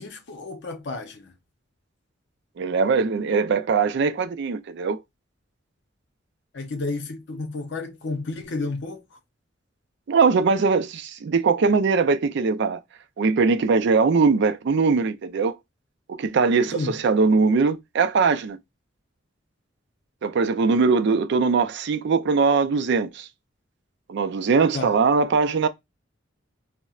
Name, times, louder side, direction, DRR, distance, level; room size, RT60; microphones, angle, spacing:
voice 1, 0.0-1.3 6.5-9.2 16.7-16.9 24.7-24.9, left 3 dB, 65° left, 0.6 m, -31 dB
voice 2, 2.6-5.0 10.1-12.8 13.2-15.6 16.1-18.6 20.2-23.3 24.1-25.7, right 4 dB, 65° right, 0.4 m, -21 dB
4.1 x 2.1 x 2.3 m
head